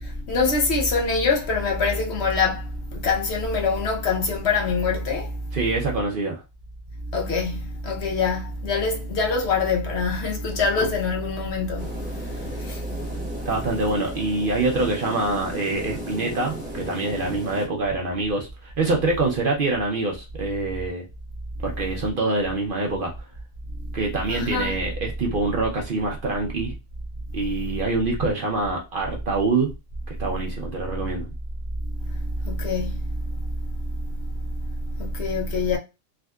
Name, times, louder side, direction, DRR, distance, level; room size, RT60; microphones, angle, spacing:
voice 1, 0.0-5.4 7.1-12.0 12.3-12.8 24.3-24.8 32.4-33.3 35.0-35.8, left 4 dB, 60° left, 0.9 m, -24 dB
voice 2, 5.5-6.4 13.5-21.0 21.6-23.1 23.9-26.8 27.3-29.7 30.1-31.3, right 3 dB, 50° right, 0.7 m, -25 dB
sound 1, 11.8-17.7, equal, 10° right, 0.7 m, -35 dB
3.6 x 2.3 x 2.2 m
omnidirectional pair, 1.4 m